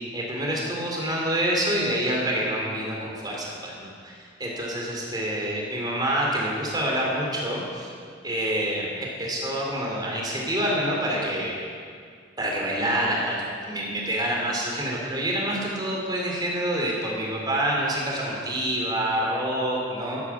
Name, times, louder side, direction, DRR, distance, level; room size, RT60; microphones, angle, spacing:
voice 1, 0.1-7.9 8.2-11.6 12.4-20.2, right 1 dB, 25° right, -2 dB, 3.5 m, -27 dB
14.0 x 10.5 x 7.4 m, 2.2 s
head